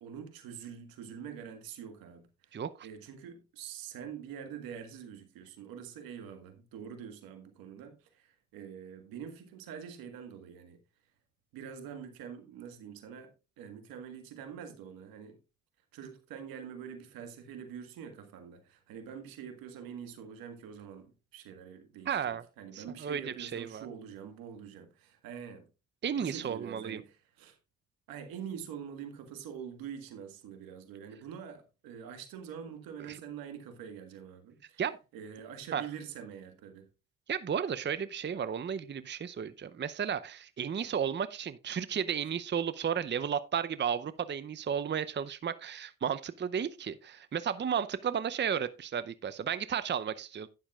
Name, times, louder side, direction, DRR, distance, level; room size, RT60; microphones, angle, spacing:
voice 1, 0.0-10.8 11.5-15.4 15.9-25.6 26.2-27.6 28.1-34.8 35.1-36.9, right 8 dB, 80° right, 1.7 m, -45 dB
voice 2, 22.1-22.4 22.7-23.9 26.0-27.0 33.1-33.2 34.8-35.0 35.7-35.8 37.3-50.5, right 8 dB, 30° right, 0.6 m, -33 dB
11.5 x 10.0 x 2.4 m
hypercardioid pair, 45°, 34 cm